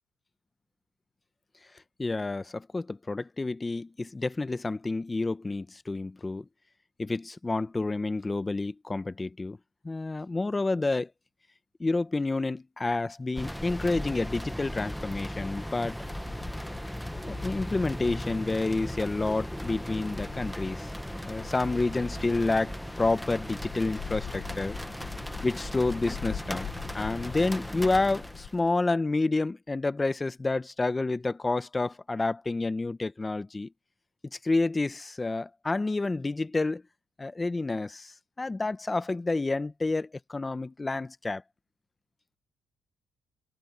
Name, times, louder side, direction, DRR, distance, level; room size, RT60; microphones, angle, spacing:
voice 1, 2.0-6.5 7.0-9.6 9.8-11.1 11.8-16.0 17.2-20.9 21.3-24.8 25.4-26.7 26.9-33.7 34.4-36.8 37.2-41.4, left 3 dB, 15° left, 0.7 m, -29 dB
sound 1, 13.3-28.7, equal, ahead, 1.0 m, -37 dB
sound 2, 22.9-28.5, left 10 dB, 65° left, 1.1 m, -44 dB
cardioid pair, 125°, 0 cm